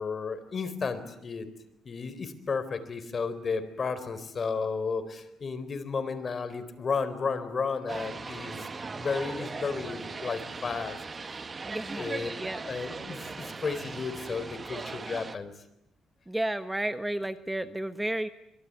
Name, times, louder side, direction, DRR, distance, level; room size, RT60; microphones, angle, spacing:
voice 1, 0.0-1.5 1.8-8.7 8.9-11.0 11.9-12.3 12.6-15.5, left 5 dB, 40° left, 12 dB, 4.2 m, -33 dB
sound 1, 7.9-15.4, right 4 dB, 30° right, 1.4 m, -39 dB
voice 2, 11.6-12.1 12.4-12.6 16.3-18.3, right 1 dB, 10° right, 10 dB, 1.2 m, -32 dB
26.0 x 23.5 x 9.9 m, 0.82 s
cardioid pair, 90°, 0 cm